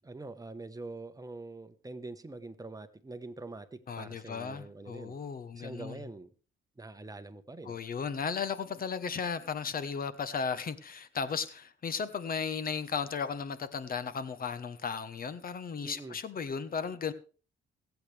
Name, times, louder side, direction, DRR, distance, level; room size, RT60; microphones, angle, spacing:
voice 1, 0.0-5.1 5.5-6.3 6.8-7.8 15.8-16.2, right 2 dB, 15° right, 1.2 m, -44 dB
voice 2, 3.9-6.0 7.6-17.1, left 6 dB, 45° left, 1.2 m, -35 dB
24.5 x 8.3 x 3.4 m
cardioid pair, 90°, 20 cm